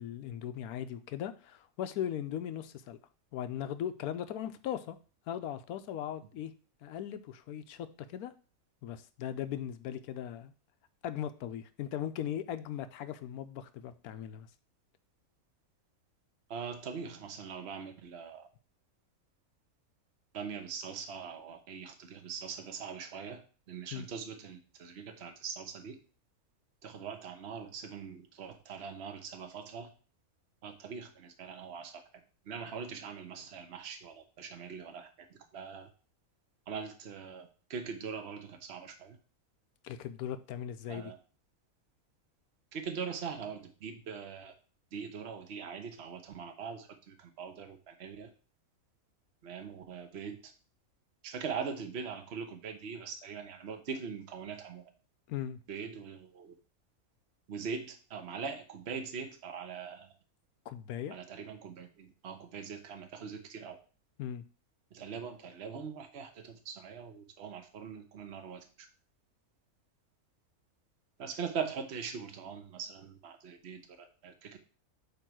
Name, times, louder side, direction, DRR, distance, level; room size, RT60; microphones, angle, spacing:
voice 1, 0.0-3.0 3.3-5.0 5.3-6.5 6.8-8.3 8.8-10.5 11.0-14.5 23.9-24.1 39.8-41.1 55.3-55.6 60.7-61.2 64.2-64.4, left 10 dB, 85° left, 11 dB, 1.1 m, -38 dB
voice 2, 16.5-18.5 20.3-23.4 23.7-26.0 26.8-29.9 30.6-32.0 32.5-35.1 35.5-35.9 36.7-39.2 40.9-41.2 42.7-44.5 44.9-48.3 49.4-50.4 51.2-54.8 55.7-56.5 57.5-60.1 61.1-63.8 64.9-68.6 71.2-74.6, right 6 dB, 50° right, 6 dB, 1.2 m, -42 dB
8.4 x 3.1 x 6.1 m, 0.38 s
omnidirectional pair, 1.6 m